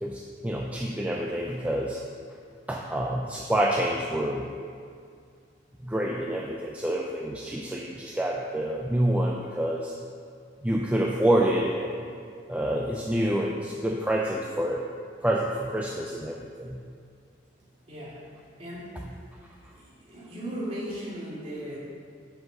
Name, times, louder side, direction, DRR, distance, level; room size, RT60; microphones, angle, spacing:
voice 1, 0.0-2.0 2.7-4.5 5.8-9.9 10.6-12.0 12.5-14.9 15.2-16.8, right 1 dB, 10° right, -1 dB, 0.4 m, -27 dB
voice 2, 17.9-19.2 19.7-21.8, equal, 30° right, -7 dB, 2.6 m, -37 dB
7.9 x 5.7 x 6.8 m, 2.3 s
head